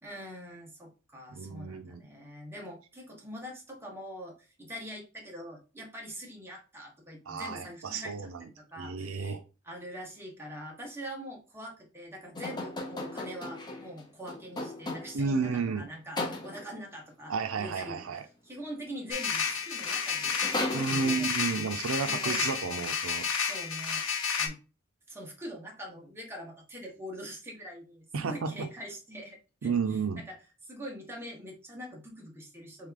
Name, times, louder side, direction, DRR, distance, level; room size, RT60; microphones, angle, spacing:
voice 1, 0.0-9.4 9.6-18.0 18.4-21.3 22.0-22.5 23.4-24.0 24.4-24.6 25.1-30.4 30.7-32.9, equal, 10° right, 1.2 m, -43 dB
voice 2, 1.3-2.0 7.3-8.5 8.8-9.4 15.1-15.9 17.3-18.2 20.7-23.2 28.1-28.5 29.6-30.2, right 5 dB, 75° right, 0.5 m, -32 dB
sound 1, 12.4-15.4 16.2-16.8 19.5-19.6 19.8-21.4, left 2 dB, 20° left, 0.8 m, -37 dB
sound 2, 19.1-24.5, left 6 dB, 75° left, 0.9 m, -31 dB
3.5 x 3.2 x 3.7 m
head